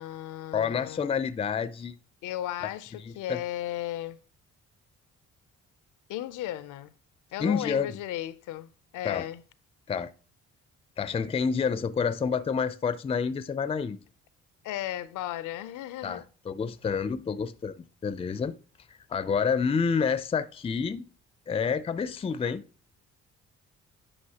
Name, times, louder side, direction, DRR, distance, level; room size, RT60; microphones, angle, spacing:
voice 1, 0.0-1.2 2.2-4.2 6.1-6.9 7.3-9.4 14.6-16.2, left 13 dB, 85° left, 0.5 m, -35 dB
voice 2, 0.5-2.0 3.0-3.4 7.4-8.0 9.0-9.3 9.9-10.1 11.0-14.0 16.0-18.5 18.9-21.0 21.5-22.6, left 6 dB, 20° left, 0.4 m, -28 dB
9.8 x 5.3 x 2.8 m
cardioid pair, 90°, 30 cm